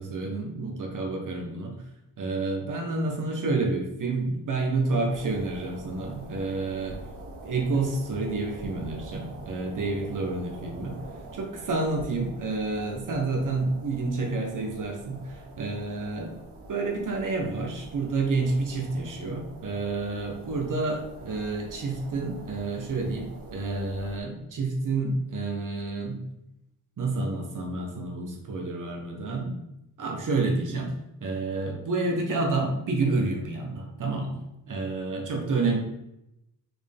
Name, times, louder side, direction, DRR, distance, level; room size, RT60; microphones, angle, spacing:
voice 1, 0.0-1.8 2.2-7.0 7.4-11.0 11.3-16.3 16.7-26.2 27.0-29.6 30.0-30.9 31.2-34.4 34.7-35.8, right 3 dB, 50° right, 1 dB, 1.2 m, -29 dB
sound 1, 5.1-24.2, right 2 dB, 85° right, 1.8 m, -45 dB
5.9 x 4.6 x 3.5 m, 0.87 s
wide cardioid pair, 175°, 40 cm